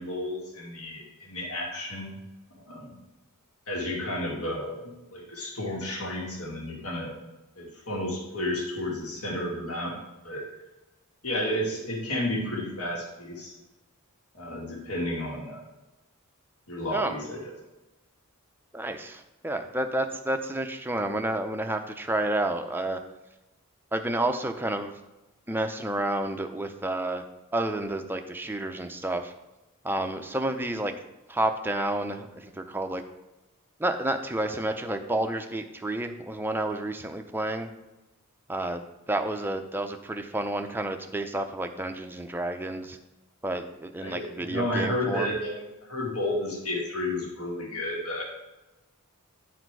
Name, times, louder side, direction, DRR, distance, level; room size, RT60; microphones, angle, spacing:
voice 1, 0.0-2.2 2.7-3.0 3.7-7.1 7.6-9.9 10.2-10.5 11.2-13.5 14.3-15.7 16.7-17.5 44.0-48.2, left 1 dB, 70° left, -2 dB, 1.9 m, -32 dB
voice 2, 18.7-23.0 23.9-24.9 25.5-27.2 27.5-29.3 29.8-30.9 31.3-33.0 33.8-37.7 38.5-38.8 39.1-43.0 43.4-45.3, right 1 dB, 10° right, 6 dB, 0.5 m, -30 dB
9.8 x 4.3 x 4.7 m, 1.0 s
head